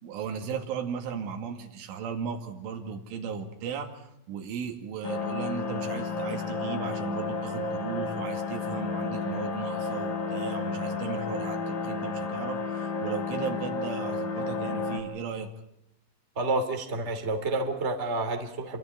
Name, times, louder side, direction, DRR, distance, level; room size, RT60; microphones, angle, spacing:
voice 1, 0.0-15.5, right 6 dB, 85° right, 3 dB, 4.8 m, -36 dB
sound 1, 5.0-15.0, left 4 dB, 50° left, 3.8 m, -32 dB
voice 2, 16.4-18.8, right 2 dB, 20° right, 6 dB, 2.1 m, -29 dB
28.0 x 25.5 x 5.1 m, 0.82 s
omnidirectional pair, 5.5 m